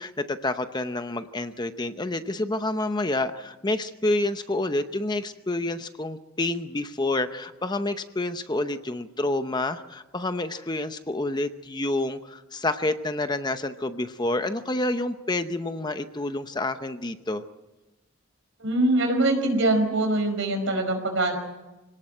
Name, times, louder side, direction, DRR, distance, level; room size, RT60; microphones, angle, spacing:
voice 1, 0.0-17.4, left 2 dB, 20° left, 9 dB, 0.7 m, -28 dB
voice 2, 18.6-21.4, right 2 dB, 65° right, 6 dB, 5.1 m, -23 dB
25.5 x 18.5 x 7.8 m, 1.1 s
head